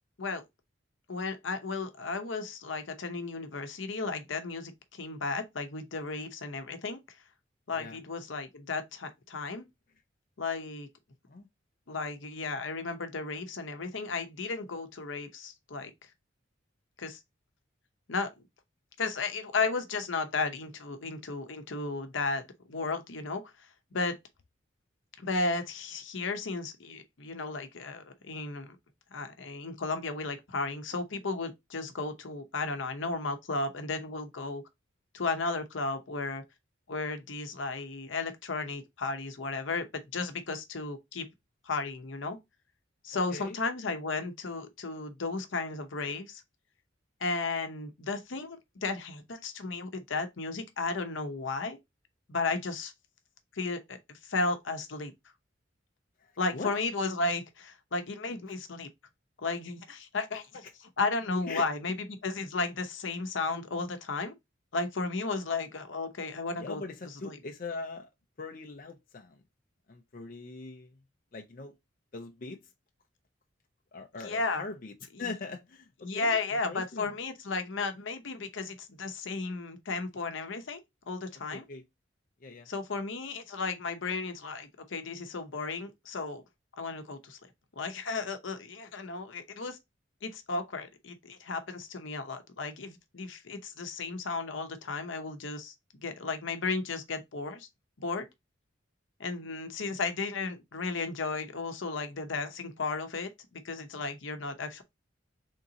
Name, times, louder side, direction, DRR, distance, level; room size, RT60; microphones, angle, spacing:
voice 1, 1.1-7.0 7.7-9.7 10.4-10.9 11.9-15.9 17.0-17.2 18.1-18.3 19.0-23.7 23.9-24.2 25.2-28.8 29.1-34.6 35.1-36.4 36.9-41.3 41.6-42.4 43.0-46.4 47.2-51.8 52.3-52.9 53.5-55.1 56.4-58.9 59.4-60.7 61.0-61.9 62.2-64.3 64.7-66.8 67.2-67.4 74.2-74.6 76.0-80.8 81.1-81.6 82.7-86.4 86.8-87.4 87.8-89.8 90.2-95.7 96.0-97.7 98.0-98.3 99.2-104.8, left 3 dB, 75° left, 0.8 m, -34 dB
voice 2, 7.7-8.0 11.3-11.5 43.3-43.6 56.2-56.7 61.5-61.7 66.6-68.1 68.4-69.4 69.9-71.0 71.3-71.8 72.1-72.6 73.9-77.1 77.5-77.6 81.5-81.8 82.4-82.7, left 3 dB, 45° left, 0.6 m, -41 dB
3.6 x 2.8 x 3.8 m
head